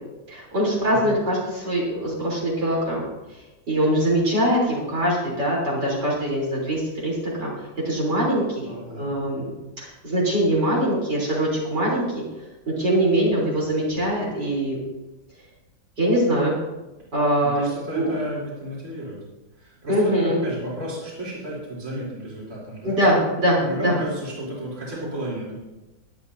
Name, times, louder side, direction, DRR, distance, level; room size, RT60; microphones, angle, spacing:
voice 1, 0.3-3.0 3.7-7.5 7.8-8.7 9.0-9.5 9.8-12.2 12.7-14.8 16.0-16.6 17.1-17.7 17.9-18.1 19.9-20.4 22.8-23.9, right 1 dB, 60° right, -5 dB, 4.3 m, -22 dB
voice 2, 8.6-9.1 17.4-19.2 19.6-23.0 23.6-25.6, equal, 40° right, -7 dB, 3.9 m, -33 dB
22.0 x 8.8 x 2.8 m, 1.1 s
omnidirectional pair, 2.1 m